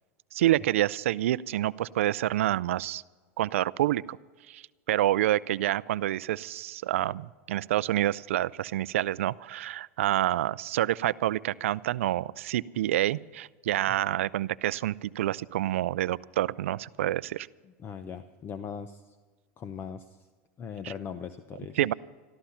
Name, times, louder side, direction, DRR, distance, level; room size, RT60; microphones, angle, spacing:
voice 1, 0.3-3.0 3.4-4.2 4.5-17.5 20.8-20.9 21.8-21.9, right 14 dB, 85° right, 19 dB, 0.4 m, -28 dB
voice 2, 17.8-19.1 19.6-20.2 20.6-21.8, left 7 dB, 35° left, 11 dB, 0.8 m, -39 dB
13.5 x 13.5 x 5.7 m, 1.4 s
supercardioid pair, 110°, 7 cm